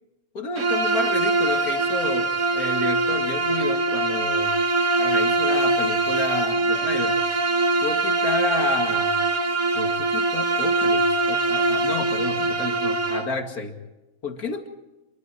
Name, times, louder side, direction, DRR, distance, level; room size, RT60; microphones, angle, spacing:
voice 1, 0.3-4.5 5.0-7.2 7.8-9.2 9.7-13.8 14.2-14.7, left 3 dB, 85° left, 5 dB, 2.7 m, -30 dB
Bowed string instrument, 0.6-13.3, right 2 dB, 55° right, 2.2 m, -23 dB
26.5 x 24.0 x 4.6 m, 1.0 s
omnidirectional pair, 1.5 m